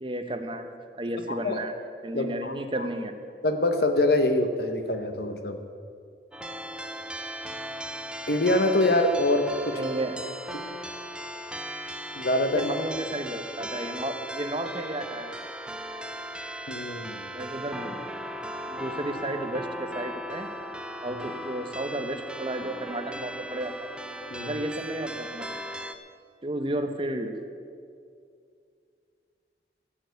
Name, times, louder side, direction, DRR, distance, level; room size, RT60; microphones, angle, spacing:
voice 1, 0.0-0.7 1.0-1.7 2.0-3.1 9.7-10.2 12.5-15.4 17.3-18.1 18.7-20.5 21.0-23.9 24.4-25.5 26.4-27.3, right 1 dB, 30° right, 6 dB, 0.9 m, -33 dB
voice 2, 1.3-1.6 2.1-2.8 3.4-5.6 8.3-9.8 12.2-12.7 16.7-17.3 21.1-21.2 24.3-24.6, left 1 dB, 60° left, 7 dB, 1.0 m, -25 dB
sound 1, 6.3-25.9, equal, 5° right, 0.5 m, -37 dB
15.0 x 7.1 x 8.1 m, 2.3 s
head